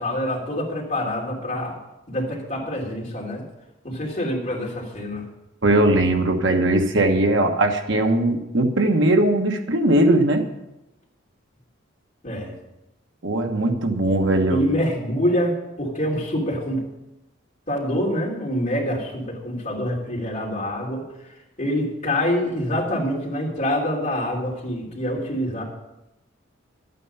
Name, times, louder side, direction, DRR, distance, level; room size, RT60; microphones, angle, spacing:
voice 1, 0.0-1.8 2.1-3.4 3.8-5.2 12.2-12.5 14.5-16.8 17.7-21.1 21.6-25.6, equal, 40° left, -3 dB, 3.2 m, -26 dB
voice 2, 5.6-10.4 13.2-14.6, right 1 dB, 70° right, 4 dB, 1.3 m, -19 dB
12.5 x 9.3 x 5.6 m, 0.91 s
head